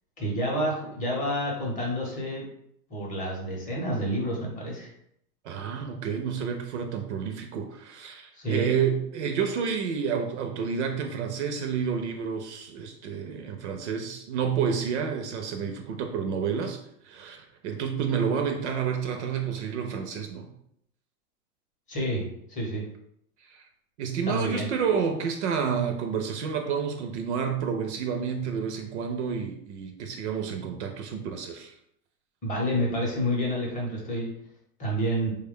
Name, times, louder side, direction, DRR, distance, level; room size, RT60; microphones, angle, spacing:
voice 1, 0.2-2.4 2.9-4.9 8.4-8.7 21.9-22.8 24.3-24.7 32.4-34.3 34.8-35.3, equal, 15° left, -2 dB, 0.7 m, -29 dB
voice 2, 5.4-16.8 17.0-20.5 23.4-23.6 24.0-31.7, right 6 dB, 50° right, 5 dB, 0.5 m, -30 dB
3.2 x 2.2 x 3.6 m, 0.73 s
hypercardioid pair, 140°, 47 cm